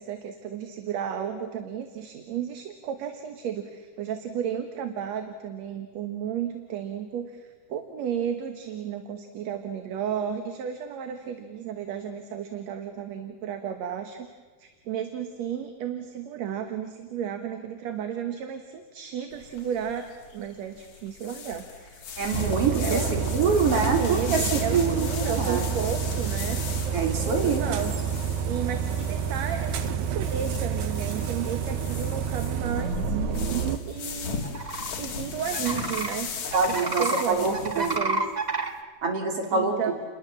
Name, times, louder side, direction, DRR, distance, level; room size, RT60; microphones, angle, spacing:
voice 1, 0.0-14.3 14.6-20.1 20.3-22.0 22.4-23.1 23.7-26.6 27.4-28.2 28.4-33.2 33.8-34.5 35.0-36.3 36.7-38.3 39.5-39.9, right 8 dB, 65° right, 7 dB, 2.5 m, -33 dB
sound 1, 19.3-38.0, left 6 dB, 75° left, 3.5 m, -37 dB
voice 2, 22.2-25.1 25.4-25.7 26.9-27.6 36.5-38.0 39.0-39.9, right 4 dB, 50° right, 3 dB, 4.0 m, -25 dB
sound 2, 22.3-33.8, right 7 dB, 85° right, 2.5 m, -29 dB
sound 3, 34.4-34.9 35.5-36.1 36.5-37.2 37.5-38.7, right 3 dB, 35° right, 0.6 m, -29 dB
29.5 x 21.0 x 7.4 m, 1.4 s
omnidirectional pair, 3.4 m